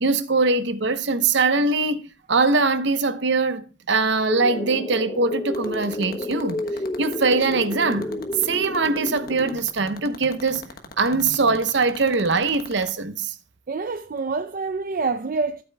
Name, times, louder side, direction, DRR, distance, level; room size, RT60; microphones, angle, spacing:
voice 1, 0.0-6.6 7.0-10.7 11.0-13.3, right 3 dB, 60° right, 0.8 m, -22 dB
sound 1, 4.3-9.6, left 1 dB, 20° left, 0.5 m, -30 dB
sound 2, 5.5-12.9, left 4 dB, 50° left, 1.3 m, -38 dB
voice 2, 13.7-15.6, right 4 dB, 45° right, 0.5 m, -26 dB
13.5 x 8.0 x 2.2 m
head